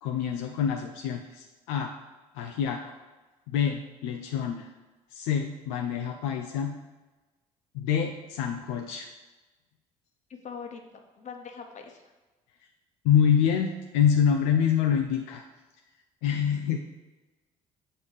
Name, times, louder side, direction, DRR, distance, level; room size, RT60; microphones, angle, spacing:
voice 1, 0.0-1.9 2.3-2.8 3.5-4.7 5.1-6.8 7.7-9.1 13.0-15.4 16.2-16.8, left 8 dB, 85° left, 2 dB, 0.5 m, -26 dB
voice 2, 10.3-10.8 11.2-12.0, left 6 dB, 50° left, 4 dB, 1.1 m, -41 dB
6.6 x 3.4 x 5.5 m, 1.2 s
supercardioid pair, 70°, 15 cm